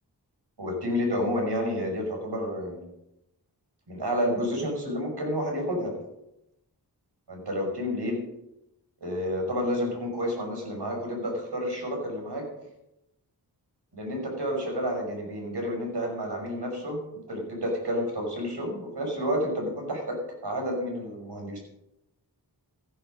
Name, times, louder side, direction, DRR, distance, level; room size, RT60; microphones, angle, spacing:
voice 1, 0.6-2.9 3.9-6.0 7.3-8.2 9.0-12.5 13.9-21.6, equal, 70° right, 1 dB, 5.9 m, -30 dB
15.0 x 11.0 x 5.3 m, 0.85 s
wide cardioid pair, 55°, 41 cm